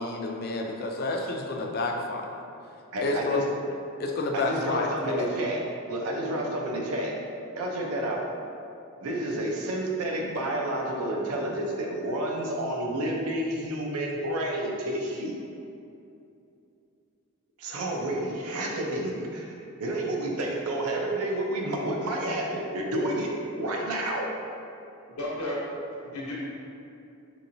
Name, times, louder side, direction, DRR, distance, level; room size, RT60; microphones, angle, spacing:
voice 1, 0.0-2.4 3.0-3.7 4.0-5.3, left 2 dB, 45° left, 2 dB, 0.3 m, -29 dB
voice 2, 2.9-3.4 4.3-5.6 5.9-7.2 7.6-8.3 9.0-15.4 17.6-24.3, right 1 dB, 85° right, 0 dB, 0.5 m, -30 dB
voice 3, 25.1-25.8 26.0-26.3, left 1 dB, 80° left, -5 dB, 0.8 m, -33 dB
3.7 x 3.0 x 2.6 m, 2.6 s
head